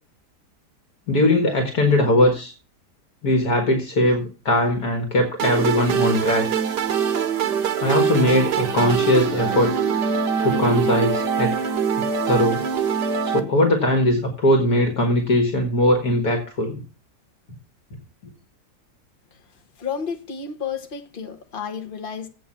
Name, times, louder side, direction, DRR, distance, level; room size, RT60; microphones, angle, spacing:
voice 1, 1.1-2.5 3.2-6.6 7.8-9.7 10.4-11.6 12.3-12.6 13.2-16.8, left 1 dB, 65° left, 2.1 m, -20 dB
sound 1, 5.4-13.4, right 7 dB, 85° right, 1.7 m, -23 dB
voice 2, 19.8-22.3, left 6 dB, 35° left, 1.3 m, -31 dB
8.3 x 6.1 x 7.2 m
omnidirectional pair, 1.8 m